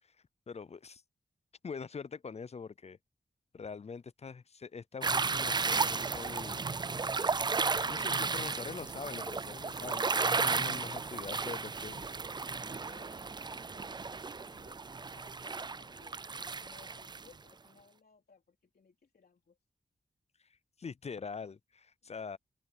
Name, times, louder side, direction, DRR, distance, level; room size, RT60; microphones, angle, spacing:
voice 1, 0.5-1.0 1.6-3.0 3.5-6.7 7.8-12.1 20.8-22.4, left 5 dB, 40° left, 0.4 m, -44 dB
sound 1, 5.0-17.3, right 4 dB, 25° right, 0.4 m, -34 dB
voice 2, 12.4-19.6 22.0-22.4, left 5 dB, 70° left, 3.3 m, -62 dB
open air
wide cardioid pair, 70°, 17 cm